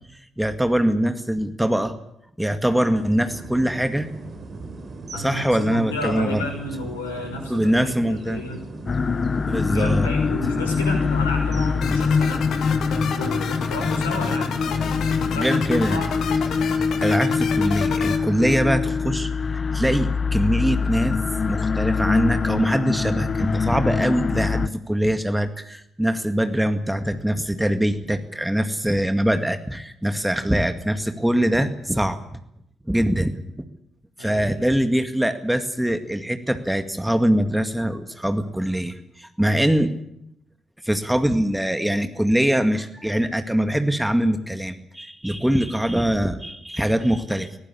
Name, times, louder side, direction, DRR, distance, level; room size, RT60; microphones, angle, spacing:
voice 1, 0.4-2.0 2.4-4.1 5.2-6.4 7.5-8.4 9.4-10.1 15.4-16.0 17.0-32.4 32.9-33.7 34.2-39.9 40.8-47.6, equal, 5° right, 8 dB, 2.1 m, -23 dB
sound 1, 2.9-17.1, right 3 dB, 45° right, 4.4 m, -38 dB
voice 2, 5.1-8.6 9.7-12.4 12.9-16.1 34.2-34.7, left 1 dB, 80° left, 3 dB, 6.1 m, -32 dB
sound 2, 8.9-24.7, left 5 dB, 35° left, 0.9 m, -23 dB
sound 3, 11.8-18.2, left 7 dB, 55° left, 2.3 m, -31 dB
24.0 x 18.0 x 8.6 m, 0.80 s
figure-of-eight pair, 40°, 0 cm